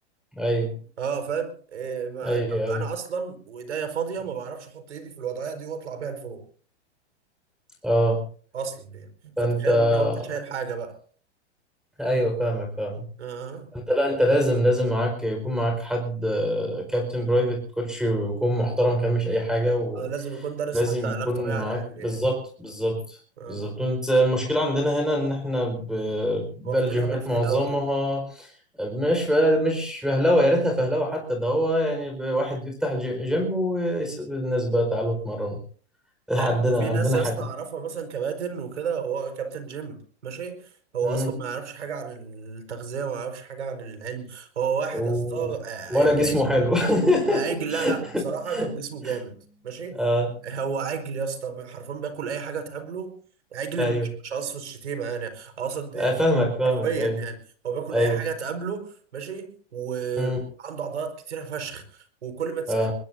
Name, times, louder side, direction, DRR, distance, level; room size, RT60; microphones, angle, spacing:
voice 1, 0.3-0.7 2.2-2.8 7.8-8.2 9.4-10.4 12.0-13.1 13.7-20.1 20.7-23.2 23.5-28.5 28.8-35.6 36.3-37.3 41.0-41.3 44.9-45.5 45.9-48.0 48.5-48.7 49.0-49.1 49.9-50.3 53.8-54.1 55.9-57.1 57.9-58.2 60.2-60.4 62.7-62.9, equal, ahead, 3 dB, 4.7 m, -24 dB
voice 2, 1.0-6.4 8.5-11.0 13.2-13.7 19.9-22.2 23.4-23.9 26.6-27.8 36.3-46.3 47.3-49.3 49.6-50.0 50.4-53.1 53.5-54.0 54.2-56.2 56.6-57.4 57.6-62.9, right 6 dB, 80° right, 8 dB, 4.9 m, -32 dB
sound 1, 46.0-50.3, left 6 dB, 75° left, 4.0 m, -41 dB
24.0 x 21.0 x 2.7 m, 0.44 s
hypercardioid pair, 125°, 34 cm